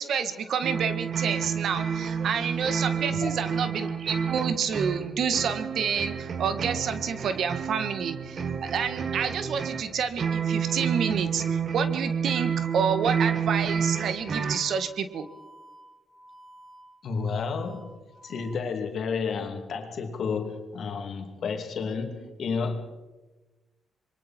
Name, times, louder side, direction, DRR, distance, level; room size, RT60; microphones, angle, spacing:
voice 1, 0.0-15.3, right 7 dB, 70° right, 1.7 m, -29 dB
sound 1, 0.6-14.7, right 7 dB, 55° right, 1.6 m, -30 dB
sound 2, 13.5-18.5, right 1 dB, 10° right, 5.2 m, -51 dB
voice 2, 17.0-17.9 18.2-22.8, left 5 dB, 65° left, 2.9 m, -31 dB
26.5 x 22.5 x 4.5 m
cardioid pair, 80°, 0 cm